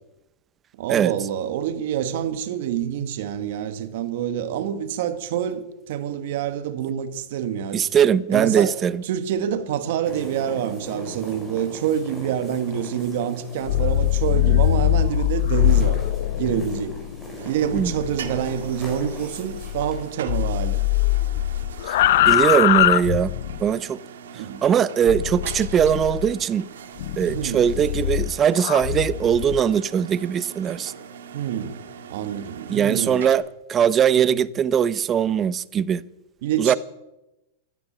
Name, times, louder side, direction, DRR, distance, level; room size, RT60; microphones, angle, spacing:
voice 1, 0.8-7.9 8.3-8.7 9.1-16.0 16.4-17.0 17.4-20.8 24.3-24.6 27.3-27.6 31.3-31.8 32.1-33.2 34.1-34.2 36.4-36.8, right 9 dB, 65° right, 1.6 m, -27 dB
voice 2, 7.7-9.0 17.7-17.9 21.9-22.0 22.2-23.3 23.6-24.0 24.6-26.6 27.2-30.9 32.7-36.0 36.6-36.7, right 8 dB, 25° right, 0.6 m, -20 dB
sound 1, 10.0-20.1, equal, 10° left, 6.6 m, -40 dB
sound 2, 13.5-20.0 20.3-23.7 25.1-26.3 27.0-29.6, left 14 dB, 65° left, 0.7 m, -22 dB
sound 3, 17.4-33.3, right 7 dB, 85° right, 1.9 m, -41 dB
13.0 x 12.5 x 7.4 m
hypercardioid pair, 130°, 0 cm